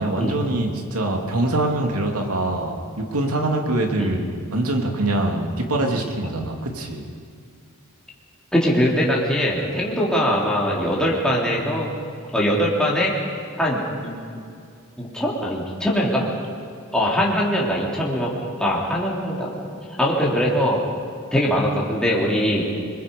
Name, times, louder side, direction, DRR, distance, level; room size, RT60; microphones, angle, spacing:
voice 1, 0.0-7.1, right 1 dB, 80° right, 2 dB, 2.8 m, -24 dB
voice 2, 8.5-11.9 12.3-13.1 13.6-14.1 15.0-16.3 16.9-18.3 18.6-19.5 20.0-20.8 21.3-22.6, equal, 5° left, -5 dB, 3.4 m, -21 dB
28.0 x 22.0 x 5.4 m, 2.3 s
head